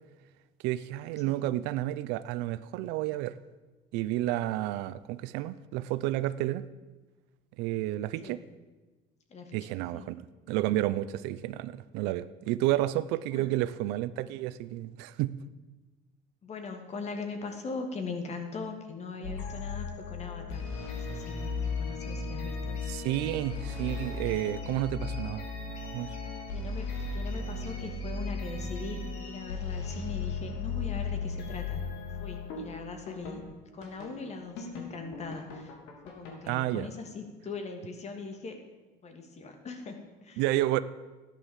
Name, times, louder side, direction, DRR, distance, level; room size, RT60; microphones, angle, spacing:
voice 1, 0.6-3.4 3.9-6.6 7.6-8.4 9.5-15.3 22.9-25.5 25.9-26.1 36.5-36.9 40.4-40.8, right 15 dB, 80° right, 15 dB, 0.7 m, -31 dB
voice 2, 16.4-22.8 26.5-31.8 32.2-33.4 33.7-35.7 36.0-38.6 39.0-40.4, left 4 dB, 40° left, 5 dB, 2.5 m, -40 dB
sound 1, 19.2-33.4 33.8-34.2 34.6-36.6, left 4 dB, 80° left, 3.3 m, -36 dB
13.5 x 10.5 x 7.3 m, 1.2 s
supercardioid pair, 100°, 17 cm